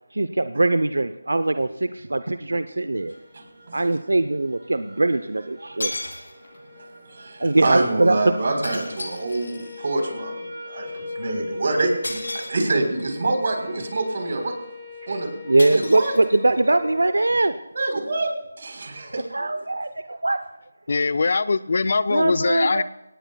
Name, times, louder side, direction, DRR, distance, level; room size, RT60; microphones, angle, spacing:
voice 1, 0.1-3.2 3.7-5.9 7.2-8.3 15.1-15.2 15.4-17.6 19.1-20.4 22.1-22.8, right 2 dB, 90° right, 11 dB, 0.7 m, -22 dB
sound 1, 3.0-17.1, left 2 dB, 15° right, 4.7 m, -40 dB
sound 2, 3.1-3.2 5.2-5.3 5.8-6.7 8.6-9.9 12.0-13.0 15.6-16.7, left 2 dB, 80° left, 6.3 m, -34 dB
voice 2, 3.3-3.8 7.2-12.2 12.5-14.5 15.1-15.3 15.7-16.1 17.7-19.2, right 2 dB, 50° right, 4 dB, 3.9 m, -26 dB
voice 3, 20.9-22.8, left 4 dB, 50° left, 15 dB, 0.5 m, -22 dB
23.0 x 18.0 x 2.3 m, 0.92 s
figure-of-eight pair, 170°, 0 cm